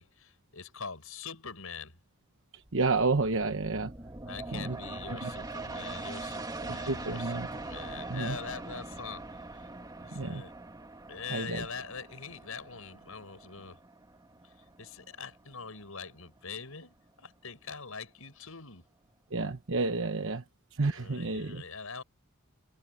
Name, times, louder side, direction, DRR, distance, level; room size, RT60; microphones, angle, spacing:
voice 1, 0.0-2.0 4.2-9.7 10.0-10.5 11.1-13.8 14.4-14.5 14.8-18.9 20.9-22.0, left 5 dB, 80° left, 6.0 m, -43 dB
voice 2, 2.5-3.9 4.5-4.8 5.2-5.3 6.7-7.5 8.1-8.4 10.1-10.4 11.3-11.7 19.3-20.4 20.7-21.6, right 3 dB, 65° right, 1.1 m, -30 dB
sound 1, 2.7-16.0 16.4-16.5, right 2 dB, 20° right, 2.3 m, -43 dB
head